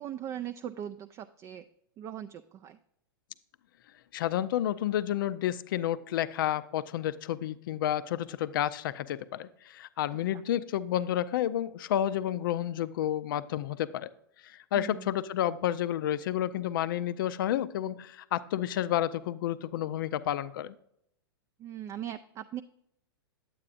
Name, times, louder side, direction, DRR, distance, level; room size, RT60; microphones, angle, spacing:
voice 1, 0.0-1.6 2.0-2.8 14.8-15.1 21.6-22.6, right 10 dB, 25° right, 9 dB, 0.3 m, -39 dB
voice 2, 4.1-14.1 14.4-20.7, left 11 dB, 60° left, 15 dB, 0.5 m, -30 dB
8.9 x 8.5 x 2.5 m, 0.73 s
hypercardioid pair, 105°, 12 cm